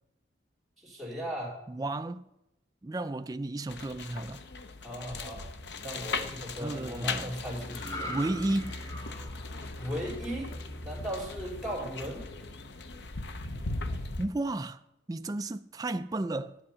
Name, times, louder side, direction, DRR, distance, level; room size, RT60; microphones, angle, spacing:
voice 1, 0.8-1.5 4.8-5.4 5.8-8.2 9.8-10.5 10.8-12.2, equal, ahead, 3.9 m, -37 dB
voice 2, 1.7-2.3 2.8-4.4 6.6-7.3 8.1-8.8 14.2-14.8 15.1-16.6, right 2 dB, 20° right, 0.3 m, -33 dB
sound 1, 3.7-14.3, left 3 dB, 65° left, 0.8 m, -38 dB
sound 2, 7.7-11.2 11.6-11.9, equal, 15° left, 1.2 m, -42 dB
10.0 x 8.6 x 5.7 m
head